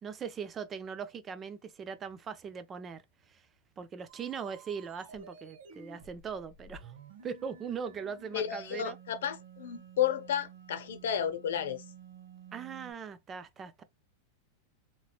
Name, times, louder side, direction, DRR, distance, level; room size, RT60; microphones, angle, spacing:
voice 1, 0.0-3.4 3.8-6.9 7.2-9.0 12.5-13.8, right 6 dB, 20° right, 0.4 m, -40 dB
sound 1, 4.1-12.9, right 6 dB, 75° right, 1.0 m, -52 dB
voice 2, 8.3-11.8, left 9 dB, 90° left, 0.7 m, -32 dB
2.9 x 2.9 x 2.3 m
supercardioid pair, 165°, 0 cm